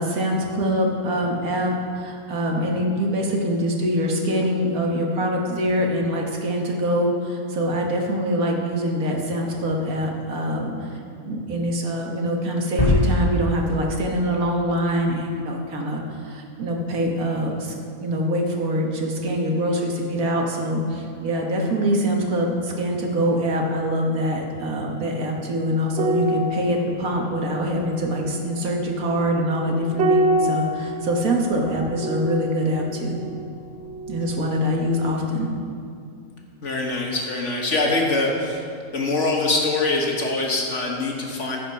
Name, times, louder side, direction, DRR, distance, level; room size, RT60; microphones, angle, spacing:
voice 1, 0.0-10.9 11.2-17.7 18.0-33.2 34.1-35.5, equal, 75° right, 0 dB, 1.7 m, -24 dB
sound 1, 12.8-15.3, left 1 dB, 30° left, 2.6 m, -24 dB
sound 2, 25.9-34.6 34.9-35.2, right 1 dB, 55° right, 0.9 m, -28 dB
voice 2, 36.6-38.6 38.9-41.6, left 2 dB, 55° left, -1 dB, 1.6 m, -23 dB
14.5 x 5.1 x 5.6 m, 2.4 s
omnidirectional pair, 1.6 m